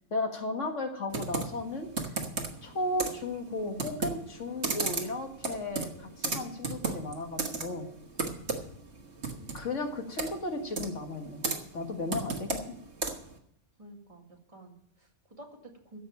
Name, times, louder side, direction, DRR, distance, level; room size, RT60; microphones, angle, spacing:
voice 1, 0.1-1.9 2.6-7.9 9.5-12.8, left 2 dB, 85° left, 4 dB, 2.1 m, -35 dB
Computer keyboard, 1.1-13.4, right 4 dB, 65° right, 1.8 m, -36 dB
voice 2, 13.8-16.0, right 1 dB, 30° right, 0 dB, 2.4 m, -51 dB
15.0 x 5.6 x 8.7 m, 0.71 s
omnidirectional pair, 1.2 m